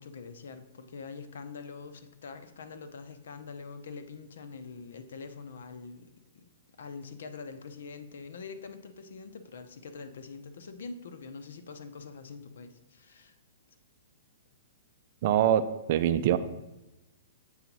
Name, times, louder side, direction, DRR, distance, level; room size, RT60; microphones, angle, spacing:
voice 1, 0.0-6.4 6.8-13.3, left 4 dB, 75° left, 10 dB, 0.7 m, -44 dB
voice 2, 15.2-16.4, right 11 dB, 45° right, 12 dB, 0.4 m, -24 dB
7.3 x 3.9 x 6.0 m, 0.96 s
hypercardioid pair, 160°, 0 cm